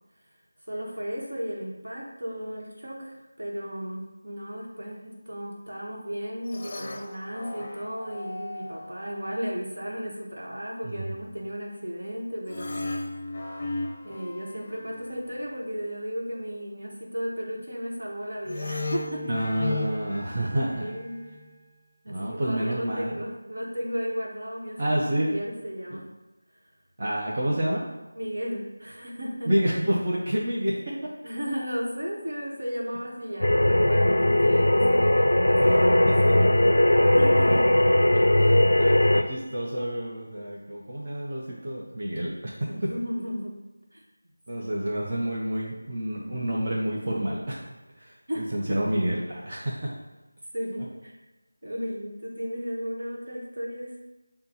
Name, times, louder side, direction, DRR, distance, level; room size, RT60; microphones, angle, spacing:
voice 1, 0.7-12.9 14.0-19.4 20.7-21.2 22.0-26.1 28.1-29.5 31.2-36.7 37.0-37.7 39.2-39.3 42.7-43.6 43.9-44.0 44.6-44.7 48.3-48.8 50.5-51.1 51.6-54.0, equal, 75° right, -2 dB, 1.2 m, -34 dB
sound 1, 6.5-9.1 12.5-15.5 18.5-21.6, left 2 dB, 30° left, 0.5 m, -36 dB
voice 2, 10.8-11.1 19.3-20.9 22.1-23.2 24.8-25.3 27.0-27.9 29.5-30.8 35.6-35.7 38.4-42.3 44.5-47.6 48.0-49.9, right 1 dB, 35° right, -5 dB, 0.7 m, -28 dB
sound 2, 33.4-39.2, left 1 dB, 85° left, 0.4 m, -19 dB
6.8 x 2.3 x 2.9 m, 1.1 s
figure-of-eight pair, 170°, 0 cm